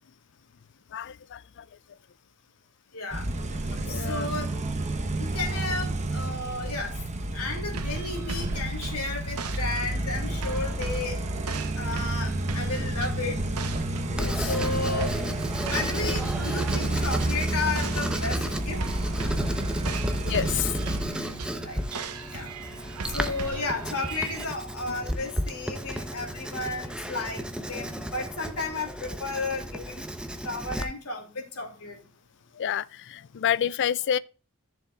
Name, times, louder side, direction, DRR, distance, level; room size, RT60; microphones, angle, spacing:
voice 1, 0.9-1.4 3.7-4.3 14.1-14.5 19.2-19.3 20.3-20.7 32.6-34.2, left 9 dB, 55° left, 0.4 m, -29 dB
voice 2, 2.9-3.3 3.9-4.5 5.2-6.9 7.3-11.2 11.8-13.4 14.3-15.2 15.7-18.8 21.6-21.8 22.3-22.5 23.1-27.4 27.7-30.0 30.4-32.0, left 3 dB, 80° left, 2.7 m, -33 dB
sound 1, 3.1-21.0, right 1 dB, 30° right, 1.1 m, -30 dB
sound 2, 7.7-24.4, right 4 dB, 80° right, 1.1 m, -38 dB
Writing, 14.2-30.8, equal, 5° right, 0.8 m, -34 dB
14.0 x 7.0 x 2.4 m
head